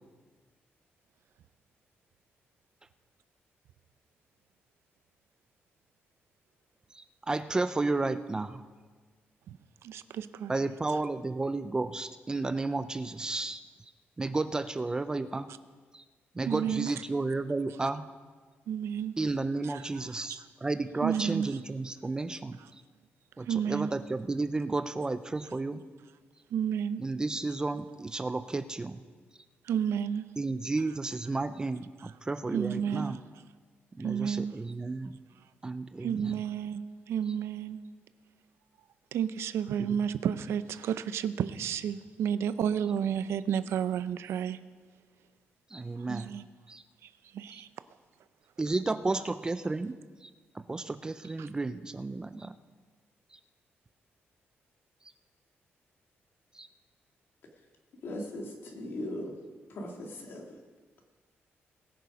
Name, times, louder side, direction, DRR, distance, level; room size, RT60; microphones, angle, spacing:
voice 1, 6.9-8.6 10.5-13.6 14.2-15.5 15.9-16.0 16.4-18.1 19.2-22.6 23.4-25.9 27.0-29.0 30.4-33.2 34.0-35.2 35.6-36.3 45.7-46.3 46.7-46.8 48.6-50.3 50.7-52.5 53.3-53.4 56.5-56.7, right 3 dB, 15° right, 12 dB, 0.4 m, -32 dB
voice 2, 9.8-10.5 10.9-11.0 16.4-16.9 17.8-17.9 18.7-19.2 19.6-20.5 21.0-21.6 22.6-22.7 23.4-23.9 26.5-27.0 29.6-30.3 32.0-32.1 32.5-33.2 34.0-34.6 36.0-37.8 39.1-44.6 46.0-46.5 47.0-47.7 51.4-51.5, right 8 dB, 85° right, 13 dB, 0.5 m, -32 dB
voice 3, 58.0-59.4 59.7-60.6, left 1 dB, 60° left, 1 dB, 2.1 m, -39 dB
20.5 x 6.9 x 4.9 m, 1.4 s
wide cardioid pair, 150°, 4 cm